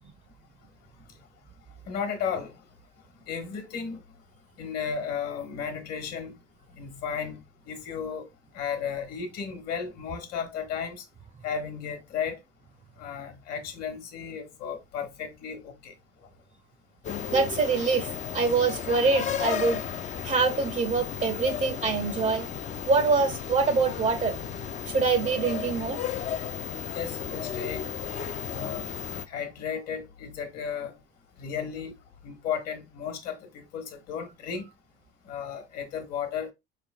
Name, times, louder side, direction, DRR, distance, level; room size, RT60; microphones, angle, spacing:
voice 1, 1.9-2.5 3.3-4.0 4.6-6.4 6.7-8.3 8.5-11.0 11.4-12.4 13.0-15.9 26.9-28.0 28.4-28.9 29.3-31.0 31.4-31.9 32.2-34.7 35.2-36.5, left 7 dB, 60° left, 1.3 m, -34 dB
sound 1, 17.0-29.3, left 8 dB, 25° left, 0.4 m, -34 dB
voice 2, 17.3-18.1 18.3-19.8 20.2-22.5 22.9-24.4 24.9-26.0, right 4 dB, 25° right, 0.5 m, -25 dB
4.5 x 3.3 x 2.3 m
hypercardioid pair, 75°, 29 cm